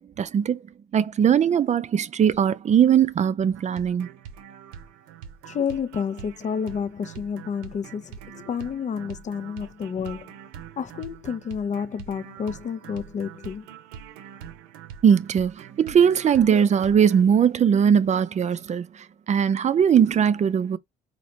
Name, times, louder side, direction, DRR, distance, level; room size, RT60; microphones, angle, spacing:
voice 1, 0.2-0.6 0.9-4.1 15.0-18.9 19.3-20.8, right 8 dB, 35° right, 0.4 m, -20 dB
sound 1, 3.5-17.2, right 8 dB, 80° right, 0.6 m, -44 dB
voice 2, 5.4-10.3 10.8-13.7, left 7 dB, 40° left, 0.5 m, -30 dB
4.0 x 2.9 x 2.8 m
hypercardioid pair, 55°, 20 cm